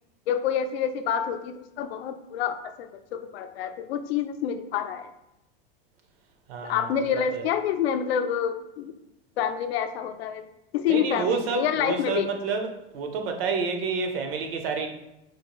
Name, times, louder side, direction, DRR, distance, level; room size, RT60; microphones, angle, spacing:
voice 1, 0.3-5.1 6.6-9.0 9.4-10.4 10.7-12.3, left 8 dB, 85° left, 8 dB, 0.5 m, -27 dB
voice 2, 6.5-6.9 10.9-12.7 12.9-14.9, right 5 dB, 70° right, 5 dB, 0.7 m, -29 dB
4.2 x 2.5 x 3.0 m, 0.90 s
supercardioid pair, 145°, 30 cm